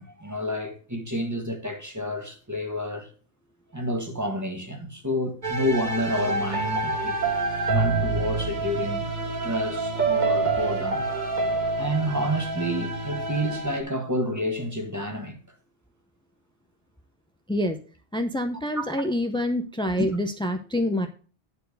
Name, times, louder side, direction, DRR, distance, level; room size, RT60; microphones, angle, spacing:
voice 1, 0.0-3.1 3.7-7.2 7.7-9.1 9.4-11.2 11.8-15.4 18.7-18.9 19.9-20.1, equal, 15° right, 1.6 m, -29 dB
sound 1, 5.4-13.8, right 3 dB, 40° right, 1.5 m, -27 dB
voice 2, 18.1-21.1, left 1 dB, 10° left, 0.3 m, -26 dB
9.7 x 4.6 x 6.6 m
omnidirectional pair, 1.1 m